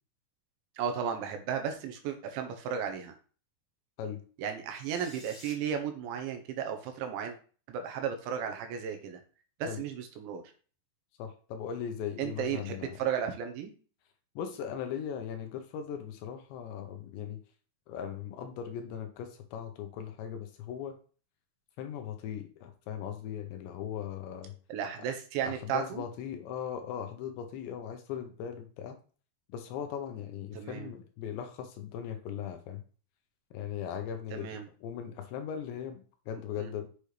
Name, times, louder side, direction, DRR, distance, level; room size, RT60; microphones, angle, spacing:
voice 1, 0.8-3.2 4.4-7.4 7.7-9.2 9.6-10.4 12.2-13.7 24.7-26.0 30.5-30.9 34.3-34.7 36.6-36.7, right 8 dB, 75° right, 6 dB, 3.2 m, -34 dB
sound 1, 4.7-5.5, left 2 dB, 20° left, 4.1 m, -51 dB
voice 2, 11.2-13.0 14.4-17.4 17.9-21.0 21.8-24.5 25.4-29.0 29.5-32.8 33.5-36.9, left 8 dB, 75° left, 6 dB, 2.9 m, -39 dB
8.2 x 6.8 x 3.3 m, 0.39 s
omnidirectional pair, 5.6 m